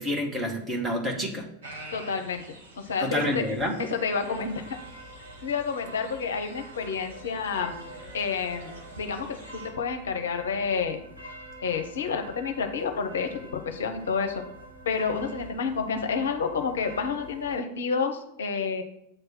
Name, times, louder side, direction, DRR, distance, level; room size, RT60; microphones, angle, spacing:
voice 1, 0.0-1.5 3.0-3.8, equal, 10° right, 1 dB, 1.4 m, -28 dB
sound 1, 1.6-9.7, right 2 dB, 65° right, 1.4 m, -47 dB
voice 2, 1.9-2.4 2.8-3.4 3.9-4.8 5.4-7.7 8.1-8.7 9.0-11.0 11.6-14.4 14.9-18.8, left 5 dB, 65° left, 6 dB, 0.7 m, -29 dB
sound 2, 4.3-17.6, right 1 dB, 90° right, 1.3 m, -46 dB
7.8 x 3.3 x 6.1 m, 0.78 s
figure-of-eight pair, 90°, 0 cm